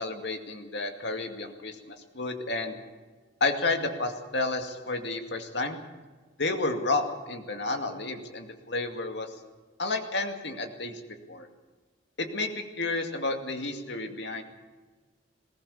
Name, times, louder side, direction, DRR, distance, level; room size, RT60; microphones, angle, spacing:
voice 1, 0.0-2.7 3.4-5.8 6.4-9.3 9.8-11.0 11.3-11.5 12.2-14.4, left 3 dB, 65° left, 5 dB, 2.3 m, -31 dB
21.0 x 18.5 x 7.1 m, 1.4 s
head